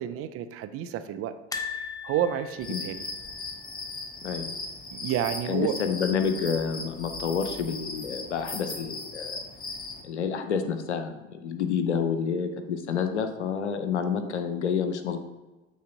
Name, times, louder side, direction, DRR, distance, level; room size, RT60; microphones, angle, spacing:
voice 1, 0.0-1.3 1.7-3.0 4.9-5.7, right 10 dB, 45° right, 10 dB, 0.6 m, -30 dB
sound 1, 1.5-4.6 4.8-5.0 5.3-5.4 6.6-7.2 7.7-7.8, left 5 dB, 10° left, 0.7 m, -39 dB
sound 2, 2.6-10.0, left 3 dB, 25° left, 1.2 m, -38 dB
voice 2, 4.2-4.6 5.4-9.4 10.0-15.2, left 6 dB, 80° left, 8 dB, 0.7 m, -29 dB
8.4 x 3.9 x 3.8 m, 1.1 s
figure-of-eight pair, 65°, 34 cm